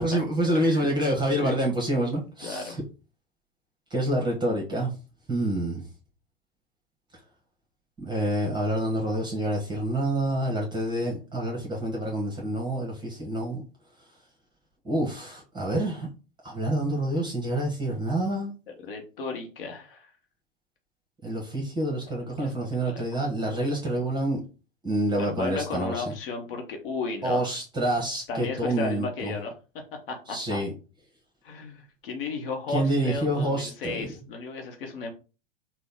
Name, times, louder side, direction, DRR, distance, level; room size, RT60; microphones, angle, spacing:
voice 1, 0.0-2.8 3.9-4.9 5.3-5.8 8.0-13.6 14.8-16.1 16.4-18.5 21.2-24.4 24.8-26.0 27.2-29.3 30.3-30.7 32.7-34.1, right 1 dB, 15° right, -1 dB, 1.4 m, -27 dB
voice 2, 2.4-2.8 18.8-20.1 22.4-22.5 22.9-23.0 23.5-23.6 25.2-27.5 28.3-29.6 30.1-30.6 31.4-35.1, left 4 dB, 65° left, 4 dB, 1.0 m, -34 dB
3.9 x 2.3 x 3.6 m, 0.34 s
hypercardioid pair, 100°, 30 cm